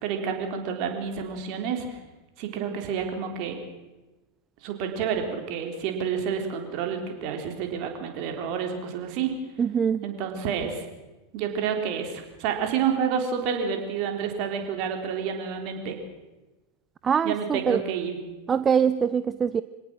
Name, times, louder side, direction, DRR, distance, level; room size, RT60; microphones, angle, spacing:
voice 1, 0.0-1.9 2.4-3.6 4.6-9.3 10.0-10.8 11.3-16.0 17.2-18.2, right 7 dB, 45° right, 4 dB, 3.8 m, -29 dB
voice 2, 9.6-10.0 17.0-17.8 18.5-19.6, right 7 dB, 25° right, 15 dB, 0.6 m, -23 dB
25.5 x 17.5 x 6.3 m, 1.1 s
figure-of-eight pair, 90°, 0 cm